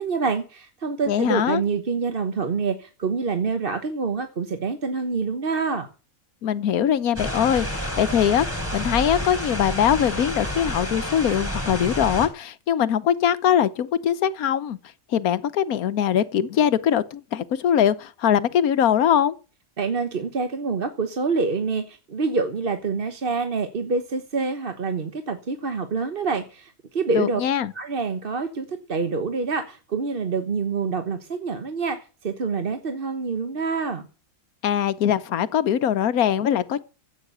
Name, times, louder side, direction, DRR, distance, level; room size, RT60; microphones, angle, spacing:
voice 1, 0.0-5.9 19.8-27.4 27.7-34.1, right 4 dB, 40° right, 1.2 m, -26 dB
voice 2, 1.1-1.6 6.4-8.5 8.7-14.8 15.1-19.3 27.1-27.7 34.6-36.8, left 9 dB, 85° left, 1.4 m, -22 dB
sound 1, 7.1-12.3, equal, 10° left, 3.9 m, -29 dB
15.0 x 8.9 x 6.9 m
omnidirectional pair, 1.5 m